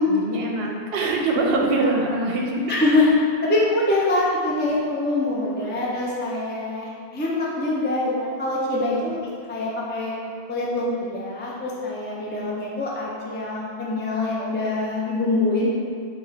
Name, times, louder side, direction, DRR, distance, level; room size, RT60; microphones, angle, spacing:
voice 1, 0.1-2.8 4.6-4.7 5.6-5.8, right 2 dB, 60° right, -1 dB, 0.8 m, -24 dB
voice 2, 2.7-3.1 3.4-9.2 9.5-10.1 10.5-15.7, left 2 dB, 15° left, -5 dB, 0.3 m, -24 dB
4.6 x 2.4 x 4.4 m, 2.1 s
omnidirectional pair, 1.2 m